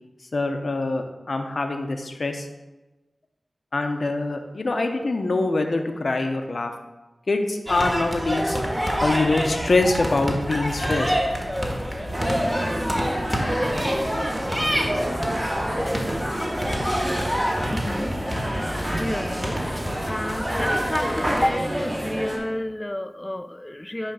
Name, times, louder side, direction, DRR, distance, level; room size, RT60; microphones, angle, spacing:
voice 1, 0.3-2.5 3.7-6.7 7.3-8.6 9.0-11.2, left 2 dB, 65° left, 5 dB, 0.7 m, -24 dB
sound 1, 7.7-21.5, equal, 5° right, 1.5 m, -27 dB
sound 2, 12.1-22.4, right 1 dB, 35° right, 2.6 m, -29 dB
voice 2, 17.7-18.2 18.4-18.6 19.0-24.1, left 1 dB, 20° left, 11 dB, 0.4 m, -30 dB
9.2 x 3.3 x 5.5 m, 1.1 s
wide cardioid pair, 50°, 0 cm